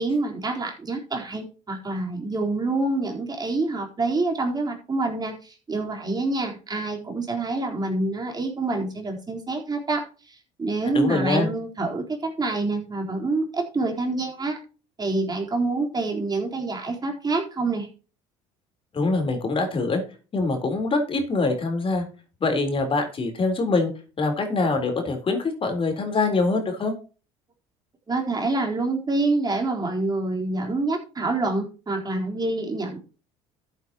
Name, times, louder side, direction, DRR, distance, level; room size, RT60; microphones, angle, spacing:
voice 1, 0.0-14.6 15.0-17.9 28.1-33.0, right 2 dB, 25° right, 1 dB, 4.0 m, -27 dB
voice 2, 10.9-11.5 18.9-20.0 20.3-22.0 22.4-23.9 24.2-26.9, left 3 dB, 35° left, 5 dB, 3.9 m, -24 dB
13.5 x 8.1 x 3.0 m, 0.33 s
hypercardioid pair, 75°, 16 cm